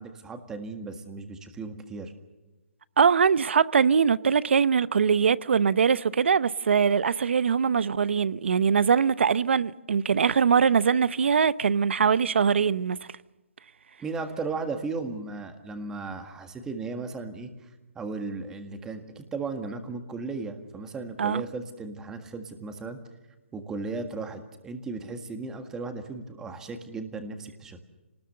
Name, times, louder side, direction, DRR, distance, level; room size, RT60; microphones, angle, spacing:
voice 1, 0.0-2.1 14.0-23.0 23.5-27.8, right 3 dB, 10° right, 1.7 m, -36 dB
voice 2, 3.0-13.0 21.2-21.4, right 6 dB, 70° right, 0.8 m, -22 dB
26.5 x 19.5 x 6.8 m
hypercardioid pair, 160°, 7 cm